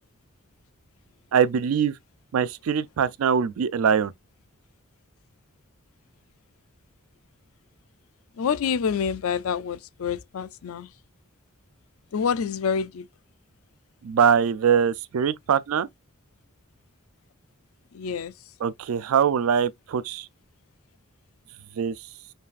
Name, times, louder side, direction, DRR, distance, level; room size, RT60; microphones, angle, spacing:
voice 1, 1.3-1.9 2.3-4.1 14.0-15.9 18.6-20.3 21.8-21.9, right 7 dB, 75° right, 0.4 m, -22 dB
voice 2, 8.4-10.9 12.1-13.1 17.9-18.3, left 6 dB, 75° left, 0.4 m, -27 dB
5.3 x 2.4 x 2.4 m
head